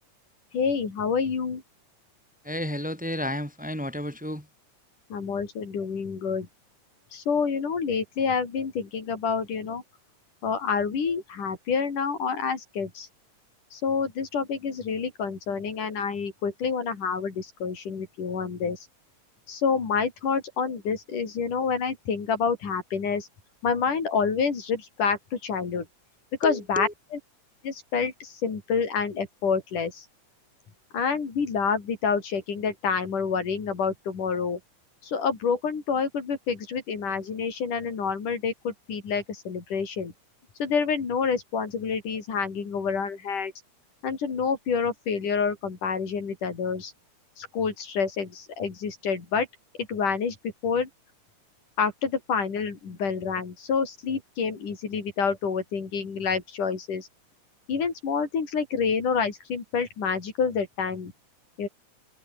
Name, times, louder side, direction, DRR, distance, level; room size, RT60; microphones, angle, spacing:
voice 1, 0.5-1.6 5.1-6.5 7.1-9.8 10.4-13.1 13.7-18.8 19.5-23.3 23.6-25.9 26.4-26.9 27.6-30.1 30.9-34.6 35.0-40.1 40.6-43.5 44.0-46.9 47.4-49.5 49.9-50.9 51.8-57.1 57.7-61.1 61.6-61.7, left 5 dB, 85° left, 5.8 m, -28 dB
voice 2, 2.4-4.5 26.4-26.9, equal, ahead, 7.6 m, -31 dB
omnidirectional pair, 3.5 m